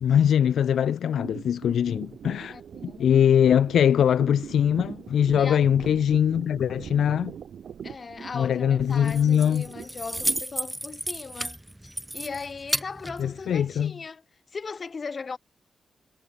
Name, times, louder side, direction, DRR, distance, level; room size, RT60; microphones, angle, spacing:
voice 1, 0.0-2.6 2.8-7.3 8.3-9.7 13.2-13.9, left 9 dB, 80° left, 0.3 m, -22 dB
sound 1, 1.1-10.4, right 8 dB, 70° right, 3.0 m, -42 dB
voice 2, 2.5-3.1 5.4-5.7 7.8-14.2 14.5-15.4, left 4 dB, 40° left, 1.7 m, -38 dB
Keys jangling, 8.8-13.9, right 1 dB, 10° right, 3.2 m, -33 dB
wide cardioid pair, 125°, 0 cm